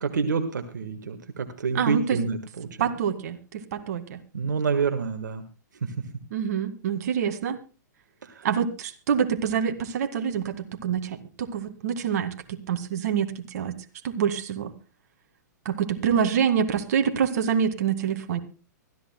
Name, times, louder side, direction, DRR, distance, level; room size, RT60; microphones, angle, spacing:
voice 1, 0.0-2.9 4.3-5.4 8.2-8.5, right 5 dB, 75° right, 7 dB, 1.6 m, -28 dB
voice 2, 1.7-2.2 2.8-4.2 6.3-7.6 8.4-13.7 14.0-14.7 15.7-18.4, right 8 dB, 55° right, 6 dB, 2.0 m, -26 dB
24.5 x 14.0 x 2.2 m, 0.32 s
hypercardioid pair, 115°, 10 cm